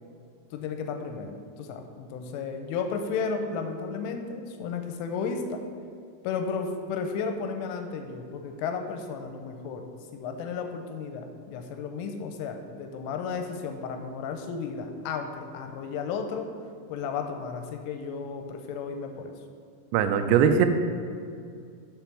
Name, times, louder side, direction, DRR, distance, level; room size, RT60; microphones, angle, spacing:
voice 1, 0.5-5.6 6.2-16.5 16.9-19.3, left 5 dB, 85° left, 6 dB, 3.0 m, -33 dB
voice 2, 19.9-20.7, right 8 dB, 85° right, 8 dB, 3.2 m, -20 dB
6.9 x 5.6 x 6.0 m, 2.3 s
omnidirectional pair, 5.8 m